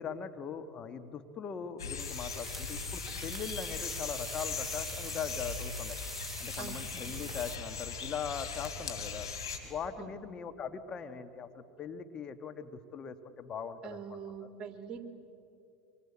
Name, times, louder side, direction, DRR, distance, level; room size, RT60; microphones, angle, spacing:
voice 1, 0.0-6.0 6.4-9.3 9.6-14.0, left 6 dB, 35° left, 8 dB, 1.6 m, -40 dB
sound 1, 1.8-9.6, left 5 dB, 85° left, 3.8 m, -39 dB
sound 2, 2.0-7.6, right 2 dB, 10° right, 1.6 m, -44 dB
voice 2, 13.8-15.0, right 7 dB, 35° right, 6 dB, 3.1 m, -43 dB
25.5 x 24.5 x 8.7 m, 2.7 s
hypercardioid pair, 85°, 2 cm